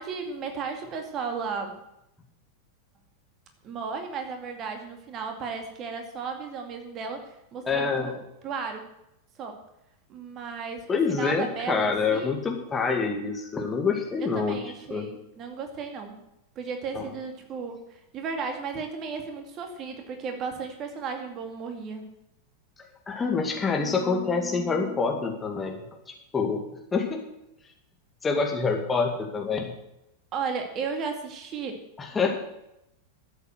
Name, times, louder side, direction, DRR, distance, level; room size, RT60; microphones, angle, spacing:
voice 1, 0.0-1.8 3.6-8.1 8.4-8.8 9.4-9.6 10.1-12.3 14.3-16.2 16.6-22.1 30.3-31.8, right 5 dB, 35° right, 4 dB, 2.3 m, -34 dB
voice 2, 7.7-8.1 10.9-14.6 14.9-15.1 16.9-17.1 23.1-25.8 26.1-26.6 26.9-27.2 28.2-29.7 32.0-32.4, left 4 dB, 15° left, 2 dB, 2.2 m, -26 dB
13.0 x 8.0 x 7.9 m, 0.84 s
figure-of-eight pair, 90°, 0 cm